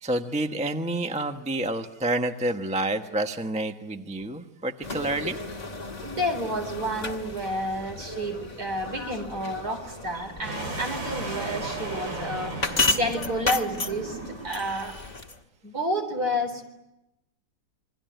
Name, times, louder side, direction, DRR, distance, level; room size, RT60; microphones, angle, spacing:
voice 1, 0.0-5.4, right 1 dB, 5° right, 6 dB, 0.9 m, -28 dB
sound 1, 4.8-15.4, left 2 dB, 25° left, 1.5 m, -33 dB
voice 2, 6.0-14.2 14.4-15.0 15.6-16.6, equal, 50° right, 5 dB, 4.6 m, -30 dB
sound 2, 10.4-14.7, right 2 dB, 75° right, 5.7 m, -35 dB
27.5 x 23.5 x 9.2 m, 0.91 s
omnidirectional pair, 2.0 m